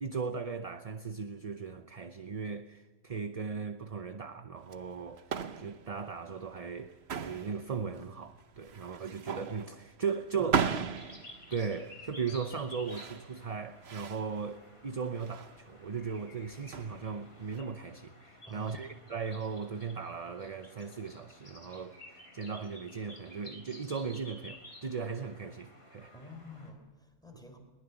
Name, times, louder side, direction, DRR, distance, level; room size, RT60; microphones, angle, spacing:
voice 1, 0.0-5.2 5.6-10.6 11.5-26.1, right 5 dB, 35° right, 0.8 m, -37 dB
sound 1, 4.6-17.6, right 6 dB, 70° right, 1.2 m, -38 dB
voice 2, 10.3-10.8 18.5-18.9 26.1-27.6, equal, 5° left, 3.9 m, -48 dB
sound 2, 10.6-26.7, left 1 dB, 60° left, 4.3 m, -53 dB
21.5 x 20.0 x 7.0 m
omnidirectional pair, 1.1 m